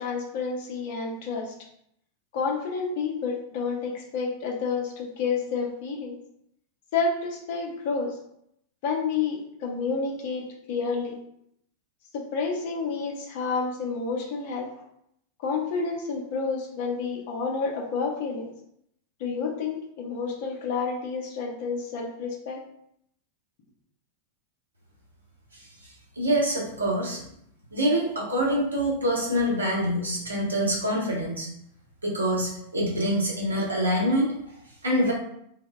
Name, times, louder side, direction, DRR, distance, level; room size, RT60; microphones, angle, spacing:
voice 1, 0.0-1.5 2.3-6.2 6.9-8.2 8.8-11.2 12.1-14.7 15.4-18.5 19.2-22.6, left 5 dB, 50° left, 0 dB, 0.5 m, -29 dB
voice 2, 26.2-27.2 27.7-31.5 32.0-34.3 34.8-35.1, equal, 75° right, -3 dB, 0.7 m, -25 dB
2.1 x 2.0 x 3.3 m, 0.73 s
figure-of-eight pair, 90°, 0 cm